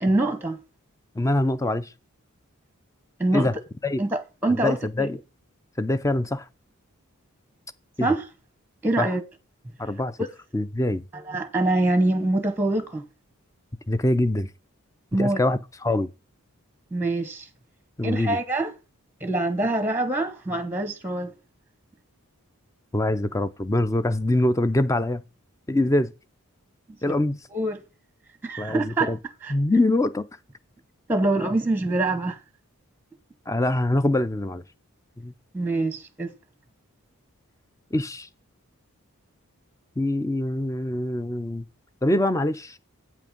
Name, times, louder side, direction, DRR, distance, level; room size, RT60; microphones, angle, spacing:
voice 1, 0.0-0.6 3.2-3.5 4.0-5.1 8.0-8.2 8.8-9.2 11.1-13.0 15.1-15.4 16.9-17.5 18.0-18.7 19.2-21.3 27.1-27.2 27.5-27.8 28.4-29.1 29.4-29.5 31.1-32.4 35.5-36.3, right 2 dB, 10° right, 0.9 m, -24 dB
voice 2, 1.2-1.9 3.3-3.6 3.8-4.0 4.5-5.2 5.8-6.5 8.0-8.1 9.0-9.1 9.8-10.2 10.5-11.0 13.9-14.5 15.2-16.1 18.0-18.4 22.9-25.2 25.7-26.1 27.0-27.4 28.6-29.2 29.5-30.3 33.5-34.6 35.2-35.3 37.9-38.3 40.0-41.6 42.0-42.8, left 1 dB, 15° left, 0.4 m, -24 dB
8.6 x 5.9 x 5.2 m
head